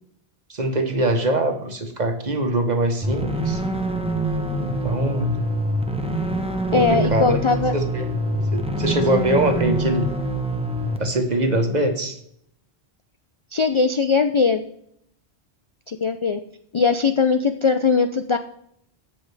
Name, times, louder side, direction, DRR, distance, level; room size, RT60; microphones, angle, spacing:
voice 1, 0.5-3.6 4.6-5.4 6.7-7.4 7.7-10.1 11.0-12.2, right 1 dB, 40° right, 5 dB, 1.3 m, -23 dB
sound 1, 3.0-11.0, right 1 dB, 5° right, 0.9 m, -25 dB
voice 2, 6.7-7.7 13.5-14.6 15.9-16.4 16.7-18.4, left 4 dB, 50° left, 8 dB, 0.4 m, -20 dB
15.0 x 5.6 x 3.4 m, 0.71 s
omnidirectional pair, 1.1 m